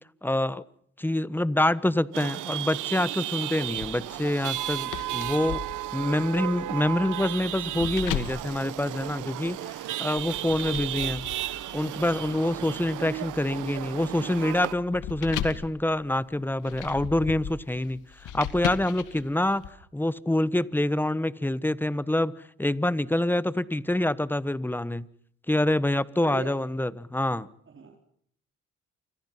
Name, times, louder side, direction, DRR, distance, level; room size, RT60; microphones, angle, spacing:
voice 1, 0.2-0.6 1.0-5.6 5.9-19.6 19.9-22.3 22.6-25.1 25.5-27.5, left 1 dB, 5° left, 17 dB, 1.2 m, -26 dB
Chatter / Vehicle horn car horn honking / Traffic noise roadway noise, 2.1-14.7, right 14 dB, 85° right, 1.3 m, -34 dB
sound 1, 3.8-9.6 10.2-19.7, left 9 dB, 85° left, 2.4 m, -38 dB
voice 2, 26.2-26.6 27.7-28.0, right 4 dB, 40° right, 3 dB, 4.4 m, -39 dB
29.0 x 26.0 x 5.7 m, 0.66 s
cardioid pair, 90°, 30 cm